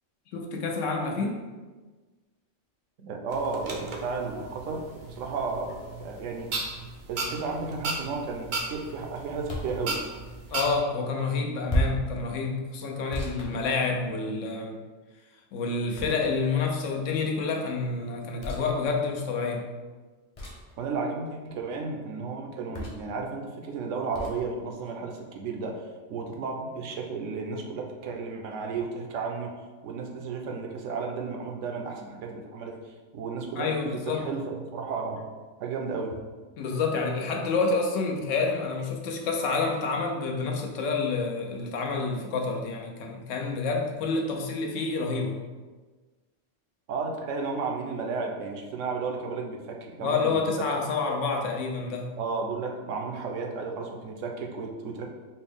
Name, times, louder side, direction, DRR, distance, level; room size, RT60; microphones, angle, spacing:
voice 1, 0.3-1.4 10.5-14.8 15.5-19.6 33.6-34.2 36.6-45.4 50.0-52.1, left 4 dB, 80° left, 2 dB, 0.9 m, -28 dB
voice 2, 3.0-6.5 7.1-10.0 20.8-25.8 26.1-29.5 29.8-32.7 33.1-35.3 35.6-36.1 46.9-50.4 52.2-55.1, right 4 dB, 80° right, 2 dB, 0.9 m, -33 dB
sound 1, 3.3-10.8, right 3 dB, 55° right, 0.5 m, -36 dB
sound 2, 9.5-9.8 11.7-12.1 13.1-14.3 15.9-16.5 18.4-18.7 20.3-20.7 22.7-23.1 24.1-24.4, equal, 45° left, 0.4 m, -32 dB
4.3 x 2.0 x 3.4 m, 1.3 s
omnidirectional pair, 1.3 m